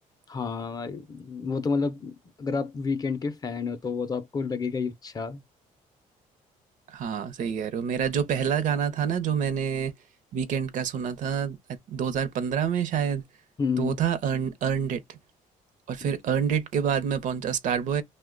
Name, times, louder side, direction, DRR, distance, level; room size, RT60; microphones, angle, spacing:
voice 1, 0.3-5.4 13.6-14.0, left 5 dB, 25° left, 0.4 m, -30 dB
voice 2, 6.9-9.9 10.3-11.6 11.9-13.2 13.8-15.2 15.9-18.0, right 8 dB, 65° right, 0.7 m, -27 dB
2.8 x 2.1 x 3.6 m
cardioid pair, 130°, 14 cm